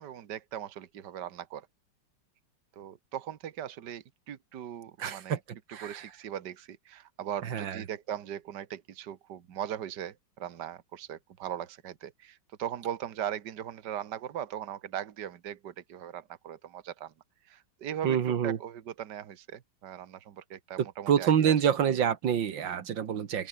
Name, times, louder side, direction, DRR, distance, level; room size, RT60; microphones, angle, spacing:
voice 1, 0.0-1.7 2.8-5.4 5.8-17.1 17.5-21.6, right 10 dB, 65° right, 1.9 m, -39 dB
voice 2, 5.0-6.0 7.4-7.8 18.0-18.6 21.1-23.5, right 8 dB, 85° right, 2.2 m, -27 dB
open air
omnidirectional pair, 2.0 m